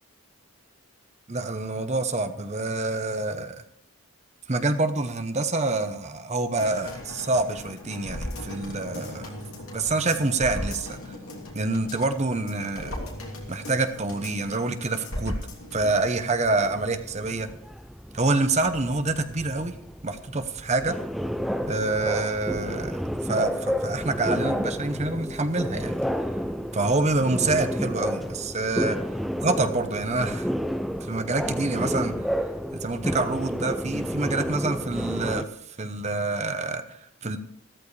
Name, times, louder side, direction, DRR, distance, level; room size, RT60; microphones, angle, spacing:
voice 1, 1.3-3.6 4.5-9.4 9.7-11.0 11.5-13.0 13.5-15.4 15.7-17.5 18.1-19.7 20.0-21.0 21.7-26.0 26.7-29.0 29.4-30.5 31.0-32.1 32.7-37.4, right 2 dB, 30° right, 8 dB, 0.8 m, -27 dB
sound 1, 6.6-16.0 16.4-16.5, left 1 dB, 80° left, 3.0 m, -37 dB
sound 2, 15.8-35.4, equal, ahead, 0.5 m, -31 dB
14.5 x 13.5 x 3.3 m, 0.71 s
head